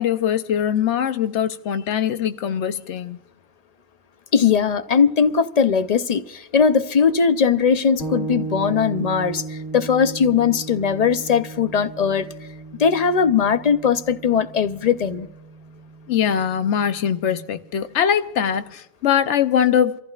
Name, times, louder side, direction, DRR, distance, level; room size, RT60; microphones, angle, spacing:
voice 1, 0.0-3.2 16.1-20.0, left 8 dB, 85° left, 1.0 m, -22 dB
voice 2, 4.3-6.2 6.5-9.4 9.7-12.3 12.8-15.3, left 6 dB, 45° left, 0.6 m, -19 dB
sound 1, 8.0-17.7, right 3 dB, 65° left, 2.0 m, -36 dB
29.0 x 14.5 x 2.4 m
omnidirectional pair, 1.2 m